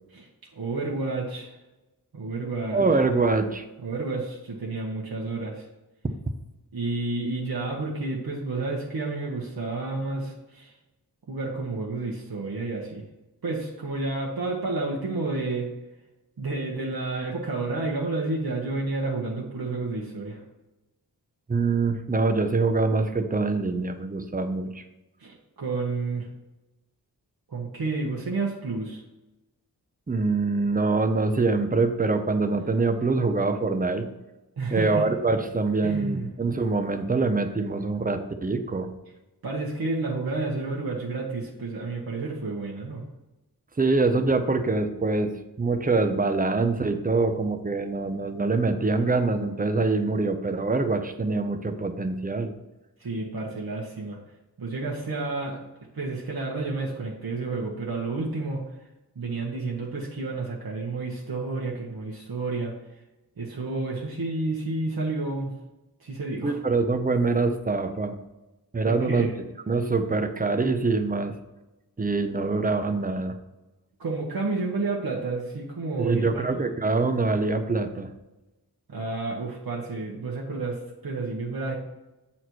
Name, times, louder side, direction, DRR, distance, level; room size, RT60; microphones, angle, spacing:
voice 1, 0.1-1.6 2.1-2.9 3.8-5.7 6.7-10.7 11.3-13.0 13.4-15.7 16.4-20.4 25.2-26.3 27.5-29.0 34.6-35.1 35.8-36.3 39.4-43.0 53.0-54.2 54.6-55.7 55.9-58.6 59.1-62.8 63.4-65.5 66.0-66.6 68.8-69.3 74.0-76.4 78.9-81.8, right 3 dB, 70° right, -3 dB, 1.2 m, -30 dB
voice 2, 2.7-3.6 21.5-24.8 30.1-34.1 34.7-38.9 43.8-52.5 66.4-68.2 68.7-69.3 69.7-71.3 72.0-73.4 76.0-78.1, right 3 dB, 25° right, 7 dB, 0.7 m, -24 dB
7.8 x 4.2 x 4.6 m, 1.0 s
wide cardioid pair, 105°, 37 cm